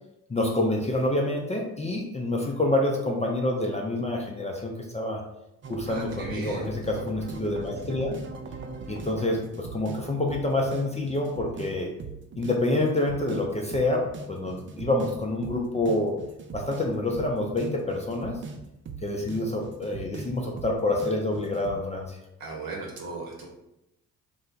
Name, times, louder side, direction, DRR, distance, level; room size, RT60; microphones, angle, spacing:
voice 1, 0.3-5.2 5.7-8.2 8.9-11.9 12.4-16.2 16.5-18.4 19.0-22.2, left 2 dB, 15° left, 0 dB, 0.5 m, -27 dB
sound 1, 5.6-21.8, right 5 dB, 30° right, 0.4 m, -40 dB
voice 2, 5.9-6.7 22.4-23.5, right 3 dB, 55° right, -1 dB, 1.1 m, -37 dB
3.1 x 2.2 x 3.8 m, 0.87 s
hypercardioid pair, 45°, 42 cm